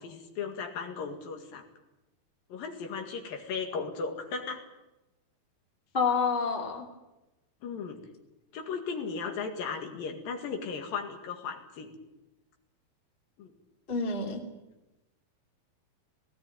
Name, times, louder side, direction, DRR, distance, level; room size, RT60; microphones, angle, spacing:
voice 1, 0.0-1.6 2.5-4.6 7.6-8.0 8.5-12.0 13.4-13.5, left 5 dB, 75° left, 4 dB, 3.7 m, -36 dB
voice 2, 5.9-6.9 13.9-14.4, left 5 dB, 15° left, 1 dB, 2.2 m, -28 dB
19.0 x 17.0 x 9.2 m, 1.0 s
omnidirectional pair, 4.1 m